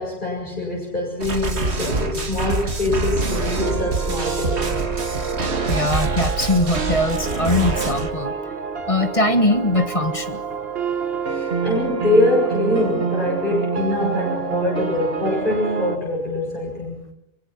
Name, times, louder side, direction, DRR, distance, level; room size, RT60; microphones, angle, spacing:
voice 1, 0.0-4.8 11.2-17.0, left 2 dB, 50° left, -3 dB, 7.8 m, -24 dB
sound 1, 1.2-8.1, right 3 dB, 80° right, 2.1 m, -25 dB
sound 2, 3.6-16.0, right 5 dB, 65° right, 1.7 m, -27 dB
voice 2, 5.7-8.3 8.9-10.4, left 1 dB, 30° left, 8 dB, 1.7 m, -21 dB
24.5 x 24.0 x 6.0 m, 0.73 s
omnidirectional pair, 1.1 m